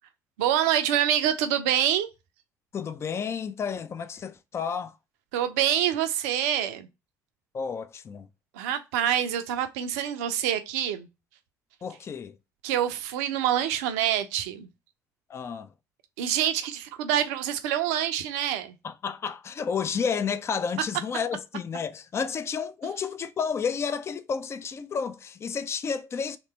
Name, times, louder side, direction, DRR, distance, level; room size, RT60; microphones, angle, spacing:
voice 1, 0.4-2.1 5.3-6.9 8.5-11.1 12.6-14.7 16.2-18.7, right 10 dB, 65° right, 0.5 m, -26 dB
voice 2, 2.7-4.9 7.5-8.3 11.8-12.4 15.3-15.7 18.8-26.4, left 6 dB, 30° left, 0.4 m, -31 dB
3.2 x 2.9 x 4.3 m
figure-of-eight pair, 50°, 9 cm